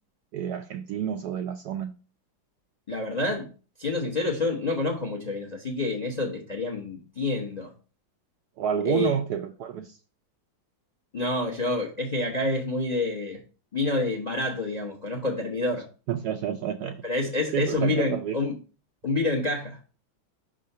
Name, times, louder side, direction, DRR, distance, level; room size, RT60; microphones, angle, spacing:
voice 1, 0.3-1.9 8.6-10.0 16.1-17.0 17.5-18.4, right 9 dB, 75° right, 0.9 m, -29 dB
voice 2, 2.9-3.5 3.8-7.7 8.8-9.2 11.1-13.4 13.7-15.9 17.0-18.6 19.0-19.8, left 2 dB, 40° left, 0.6 m, -28 dB
5.6 x 3.7 x 5.4 m
omnidirectional pair, 2.1 m